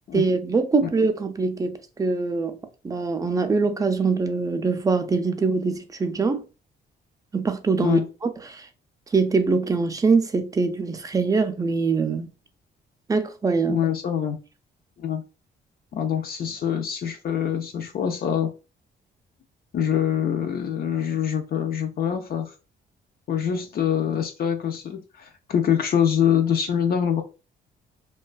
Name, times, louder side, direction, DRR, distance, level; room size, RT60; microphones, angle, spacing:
voice 1, 0.1-2.6 2.8-6.4 7.3-8.6 9.1-12.3 13.1-13.8, right 4 dB, 15° right, 0.4 m, -23 dB
voice 2, 13.7-14.4 15.0-15.2 15.9-18.5 19.7-22.5 23.3-27.2, left 8 dB, 50° left, 0.4 m, -24 dB
2.4 x 2.2 x 2.3 m
cardioid pair, 90°, 20 cm